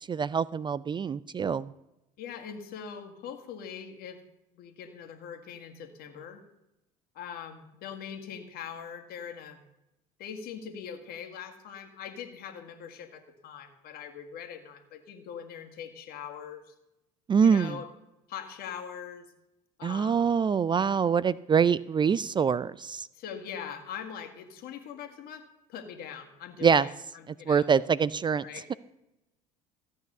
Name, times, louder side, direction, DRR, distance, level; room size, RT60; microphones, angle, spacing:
voice 1, 0.1-1.7 17.3-17.8 19.8-23.1 26.6-26.9 27.3-28.4 28.7-28.8, right 6 dB, 25° right, 19 dB, 0.4 m, -25 dB
voice 2, 2.2-4.2 4.5-6.4 7.2-9.6 10.2-16.7 17.4-17.9 18.3-19.3 19.8-20.3 23.1-27.7 28.4-28.6, left 8 dB, 60° left, 6 dB, 2.0 m, -42 dB
14.5 x 8.4 x 6.6 m, 0.91 s
hypercardioid pair, 75°, 18 cm